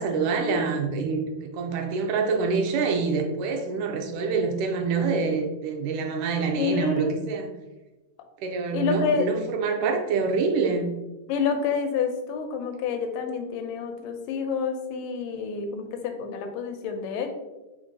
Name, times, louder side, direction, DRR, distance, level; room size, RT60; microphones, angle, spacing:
voice 1, 0.0-7.5 8.4-11.0, right 4 dB, 80° right, 3 dB, 1.9 m, -26 dB
voice 2, 6.6-7.1 8.7-9.4 11.3-17.3, left 6 dB, 85° left, 5 dB, 2.2 m, -28 dB
5.7 x 2.9 x 2.7 m, 1.1 s
omnidirectional pair, 3.7 m